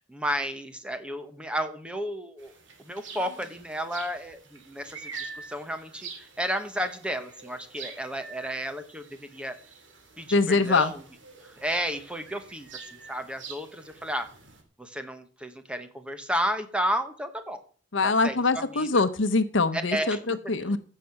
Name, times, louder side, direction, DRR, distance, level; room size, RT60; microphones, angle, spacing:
voice 1, 0.0-2.5 2.8-9.6 10.2-11.0 11.4-14.3 14.8-17.6 18.0-19.0 19.7-20.2 20.7-20.8, equal, 5° right, 8 dB, 1.2 m, -32 dB
sound 1, 2.4-14.6, right 5 dB, 75° right, 2.5 m, -46 dB
voice 2, 10.3-10.9 17.9-20.8, left 3 dB, 75° left, 12 dB, 0.9 m, -24 dB
15.0 x 6.7 x 5.9 m, 0.44 s
head